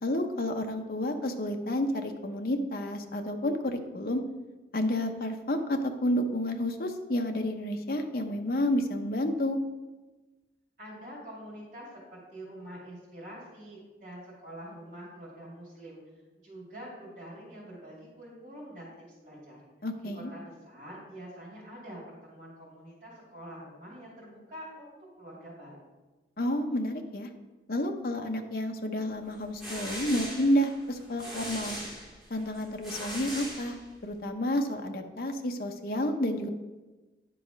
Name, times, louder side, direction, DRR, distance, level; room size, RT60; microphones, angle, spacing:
voice 1, 0.0-4.2 4.7-9.6 19.8-20.3 26.4-27.3 27.7-31.8 32.3-33.8 34.0-36.5, left 1 dB, 55° left, 5 dB, 0.7 m, -30 dB
voice 2, 10.8-16.0 16.4-19.7 20.1-24.9 25.2-25.8, equal, 55° right, -8 dB, 2.6 m, -46 dB
sound 1, 29.3-34.2, equal, ahead, 1.9 m, -40 dB
10.0 x 4.1 x 5.1 m, 1.2 s
head